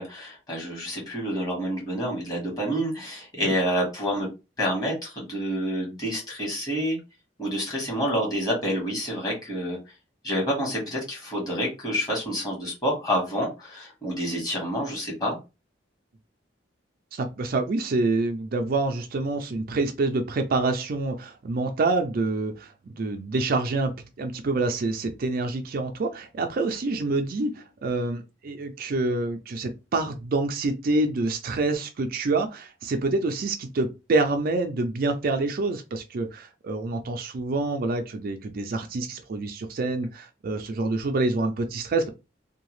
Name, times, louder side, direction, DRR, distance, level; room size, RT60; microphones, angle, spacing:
voice 1, 0.0-4.3 4.6-7.0 7.4-9.8 10.2-15.4, equal, 20° left, 1.5 m, -28 dB
voice 2, 17.1-42.1, right 3 dB, 50° right, 0.4 m, -27 dB
2.7 x 2.3 x 3.1 m
head